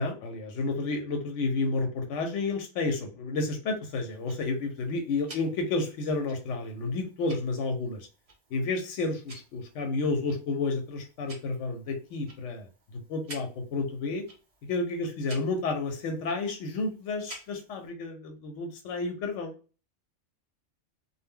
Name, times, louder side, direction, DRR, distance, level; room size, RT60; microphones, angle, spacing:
voice 1, 0.0-8.1 8.5-14.2 14.6-19.5, left 3 dB, 90° left, 4 dB, 0.9 m, -31 dB
Tick-tock, 3.9-17.9, right 2 dB, 40° right, 0.6 m, -52 dB
2.2 x 2.0 x 3.5 m, 0.35 s
omnidirectional pair, 1.2 m